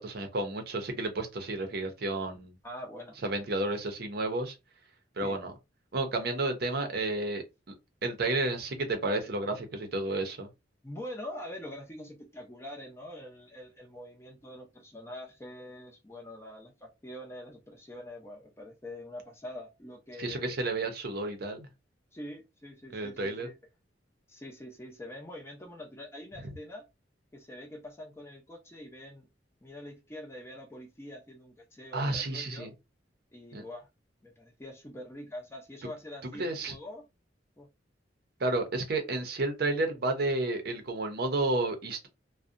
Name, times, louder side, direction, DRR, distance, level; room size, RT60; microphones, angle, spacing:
voice 1, 0.0-2.5 3.2-4.5 5.2-5.5 5.9-7.4 8.0-10.5 20.2-21.7 22.9-23.5 31.9-32.7 33.5-33.6 36.4-36.7 38.4-42.1, right 2 dB, 55° right, 0.6 m, -31 dB
voice 2, 2.6-3.2 5.2-5.4 10.8-20.6 22.1-23.5 24.3-26.8 27.3-29.3 29.6-32.7 33.3-33.9 34.2-37.0 37.6-37.7, left 1 dB, 15° left, 0.5 m, -44 dB
2.6 x 2.1 x 2.5 m
head